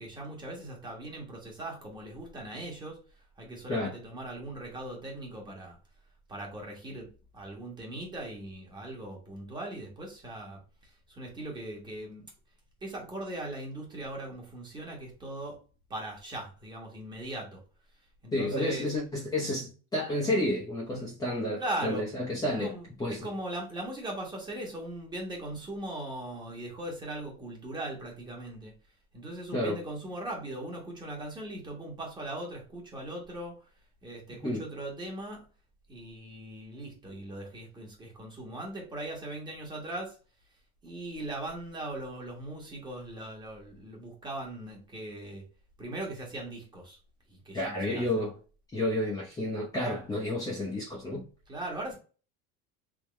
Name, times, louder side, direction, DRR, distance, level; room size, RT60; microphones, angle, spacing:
voice 1, 0.0-3.0 3.4-5.8 6.3-7.1 7.3-10.6 11.1-12.3 12.8-15.6 15.9-17.6 18.2-18.9 20.9-21.1 21.6-22.0 22.5-28.7 29.1-33.5 34.0-35.4 35.9-40.2 40.8-45.4 45.8-47.0 47.3-48.0 51.5-51.9, right 1 dB, 15° right, 1.3 m, -39 dB
voice 2, 18.3-22.7 23.0-23.2 29.5-29.8 34.4-34.6 47.5-48.3 48.7-51.2, left 1 dB, 15° left, 0.8 m, -30 dB
3.7 x 2.9 x 3.1 m
cardioid pair, 155°, 29 cm